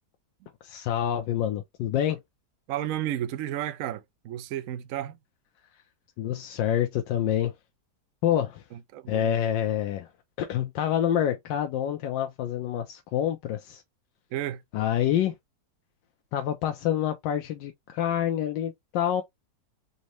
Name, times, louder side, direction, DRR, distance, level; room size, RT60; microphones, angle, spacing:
voice 1, 0.6-2.2 6.2-7.5 8.2-8.6 9.1-10.1 10.4-13.8 14.7-15.4 16.3-19.2, left 10 dB, 90° left, 1.3 m, -27 dB
voice 2, 2.7-5.2 8.7-9.3 14.3-14.6, right 12 dB, 75° right, 0.7 m, -32 dB
4.2 x 2.7 x 3.0 m
omnidirectional pair, 1.9 m